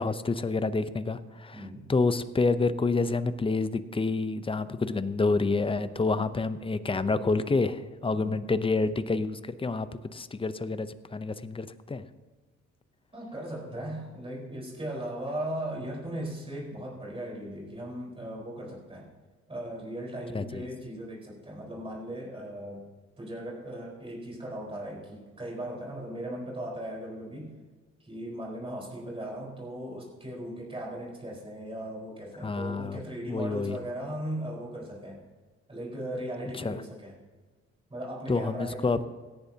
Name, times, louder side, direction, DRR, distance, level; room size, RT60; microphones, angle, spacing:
voice 1, 0.0-12.0 20.3-20.7 32.4-33.0 33.3-33.8 36.6-36.8 38.3-39.1, left 3 dB, 20° left, 12 dB, 0.6 m, -28 dB
voice 2, 1.5-1.9 8.1-8.4 13.1-19.1 19.5-22.8 23.2-27.5 28.0-35.2 35.7-37.2 37.9-39.1, right 1 dB, 20° right, -3 dB, 4.4 m, -38 dB
17.0 x 10.5 x 2.8 m, 1.3 s
cardioid pair, 90°, 30 cm